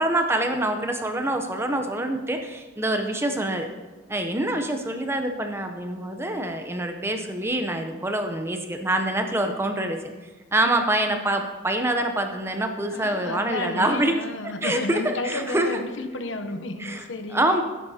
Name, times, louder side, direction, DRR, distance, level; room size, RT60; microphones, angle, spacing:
voice 1, 0.0-3.7 4.1-10.0 10.5-14.2 14.6-15.8 16.8-17.0 17.3-17.6, right 1 dB, 15° right, 5 dB, 0.6 m, -25 dB
voice 2, 12.9-17.6, left 2 dB, 75° left, 8 dB, 0.8 m, -32 dB
13.0 x 11.0 x 2.8 m, 1.3 s
head